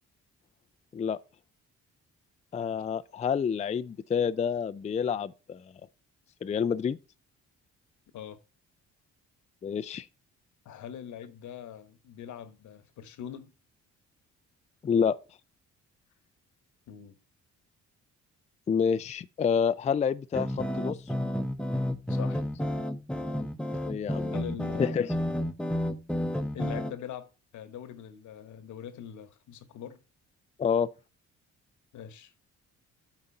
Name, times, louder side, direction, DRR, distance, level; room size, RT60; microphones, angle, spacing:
voice 1, 2.5-5.6 6.4-7.0 9.6-10.1 14.8-15.2 18.7-21.0 23.9-24.3 24.8-25.1 30.6-30.9, left 7 dB, 25° left, 0.3 m, -28 dB
voice 2, 10.6-13.5 16.9-17.2 22.1-22.4 24.3-25.1 26.5-30.0 31.9-32.3, left 9 dB, 75° left, 1.1 m, -42 dB
sound 1, 20.3-26.9, left 1 dB, 5° left, 0.8 m, -31 dB
8.8 x 4.1 x 5.4 m
cardioid pair, 90°, 30 cm